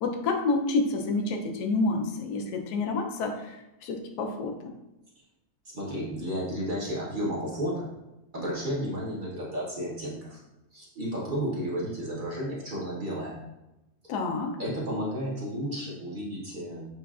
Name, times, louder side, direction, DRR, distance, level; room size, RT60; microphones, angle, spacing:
voice 1, 0.0-4.7 14.1-14.6, left 3 dB, 75° left, 4 dB, 1.2 m, -29 dB
voice 2, 5.7-7.9 8.3-10.4 10.7-13.4 14.0-14.1 14.6-16.9, equal, 35° right, -6 dB, 1.0 m, -32 dB
7.2 x 2.5 x 2.4 m, 0.97 s
omnidirectional pair, 1.8 m